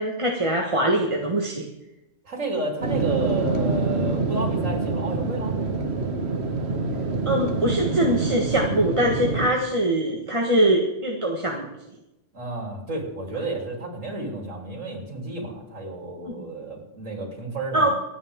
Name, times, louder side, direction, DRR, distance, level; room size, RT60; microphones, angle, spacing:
voice 1, 0.0-1.6 7.2-11.7 16.4-16.5 17.7-17.9, right 1 dB, 25° right, 0 dB, 1.5 m, -23 dB
voice 2, 2.3-5.6 12.3-17.9, right 2 dB, 75° right, 0 dB, 3.6 m, -31 dB
sound 1, 2.8-9.5, right 3 dB, 55° right, 1.7 m, -26 dB
27.0 x 9.5 x 3.6 m, 0.91 s
omnidirectional pair, 1.3 m